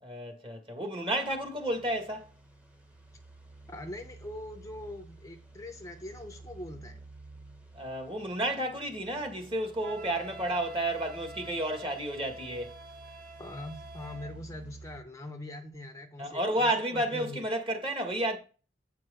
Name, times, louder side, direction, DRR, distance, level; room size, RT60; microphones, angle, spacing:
voice 1, 0.0-2.3 7.7-12.8 16.2-18.4, right 1 dB, 30° right, 1.7 m, -31 dB
sound 1, 1.3-15.0, right 2 dB, 5° right, 1.1 m, -52 dB
voice 2, 3.7-7.0 13.4-17.4, left 1 dB, 15° left, 0.7 m, -42 dB
Wind instrument woodwind instrument, 9.8-14.3, right 2 dB, 60° right, 2.6 m, -47 dB
8.4 x 4.5 x 5.0 m
head